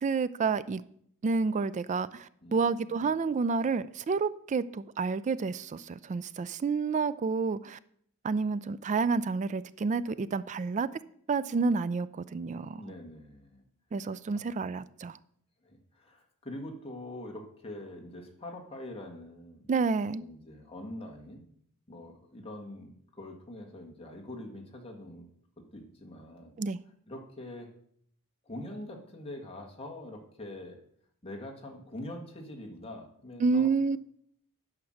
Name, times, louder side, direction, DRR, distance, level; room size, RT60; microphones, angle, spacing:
voice 1, 0.0-0.8 1.2-7.8 8.2-10.9 11.3-12.8 13.9-15.2 19.7-20.2 26.6-26.8 33.4-34.0, right 4 dB, 35° right, 16 dB, 0.3 m, -29 dB
voice 2, 2.4-3.1 12.7-13.6 14.3-14.4 15.6-19.7 20.1-21.4 21.9-25.3 25.6-26.5 27.1-27.7 28.4-30.8 31.2-33.7, left 1 dB, 25° left, 1 dB, 1.6 m, -44 dB
9.6 x 5.9 x 6.3 m, 0.66 s
head